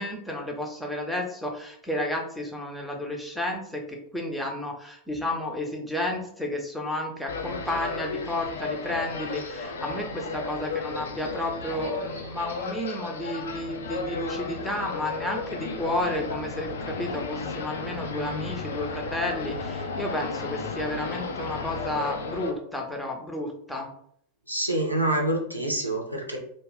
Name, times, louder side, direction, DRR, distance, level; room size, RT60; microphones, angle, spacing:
voice 1, 0.0-23.9, left 1 dB, 5° left, 0 dB, 0.6 m, -32 dB
sound 1, 7.3-22.5, left 4 dB, 65° left, 0.4 m, -34 dB
voice 2, 24.5-26.4, right 1 dB, 90° right, 0 dB, 0.6 m, -26 dB
2.3 x 2.3 x 3.3 m, 0.66 s
figure-of-eight pair, 90°, 0 cm